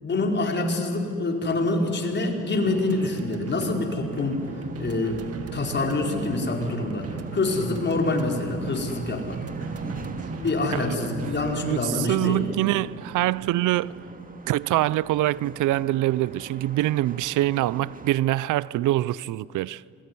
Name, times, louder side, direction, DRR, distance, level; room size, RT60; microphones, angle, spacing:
voice 1, 0.0-4.5 4.8-9.4 10.4-12.5, left 2 dB, 35° left, 5.0 m, -26 dB
sound 1, 2.6-11.6, right 5 dB, 50° right, 2.0 m, -37 dB
sound 2, 4.1-18.1, right 3 dB, 30° right, 2.1 m, -41 dB
voice 2, 11.6-14.0 14.5-19.8, right 16 dB, 85° right, 0.6 m, -24 dB
26.5 x 21.5 x 9.8 m
cardioid pair, 90°, 30 cm